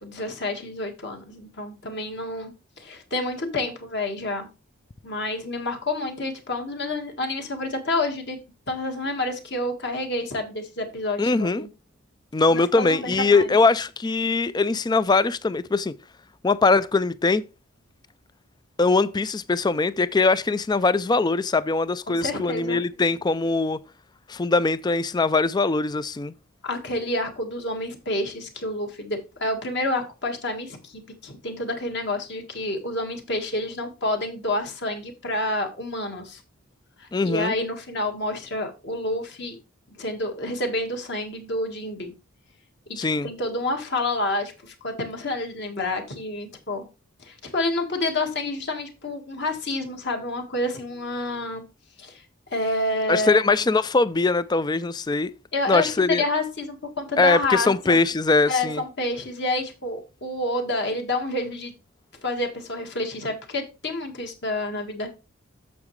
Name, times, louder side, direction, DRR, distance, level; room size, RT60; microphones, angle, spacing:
voice 1, 0.0-4.5 5.0-8.4 8.7-11.7 12.5-13.5 22.1-22.8 26.6-36.4 37.0-39.6 39.9-42.1 42.9-46.9 47.2-51.6 52.0-52.2 52.5-53.4 55.5-58.0 58.5-61.7 62.2-65.1, left 2 dB, 50° left, 1.7 m, -29 dB
voice 2, 11.2-11.7 12.3-15.9 16.4-17.4 18.8-23.8 24.3-26.3 37.1-37.5 43.0-43.3 53.1-55.3 55.7-56.2 57.2-58.8, left 3 dB, 20° left, 0.3 m, -21 dB
8.5 x 7.2 x 3.2 m
head